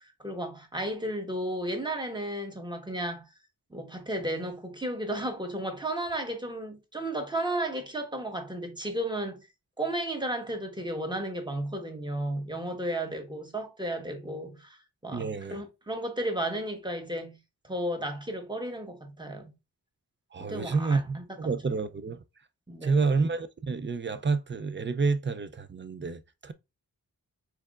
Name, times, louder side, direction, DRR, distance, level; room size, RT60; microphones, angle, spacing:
voice 1, 0.0-3.3 3.7-9.5 9.8-14.8 15.0-17.4 17.6-19.5 20.4-21.5 22.7-23.1, right 1 dB, 10° right, 1.2 m, -33 dB
voice 2, 15.1-15.6 20.3-22.2 22.8-26.5, right 4 dB, 30° right, 0.5 m, -29 dB
4.5 x 4.0 x 2.4 m
wide cardioid pair, 90°, 36 cm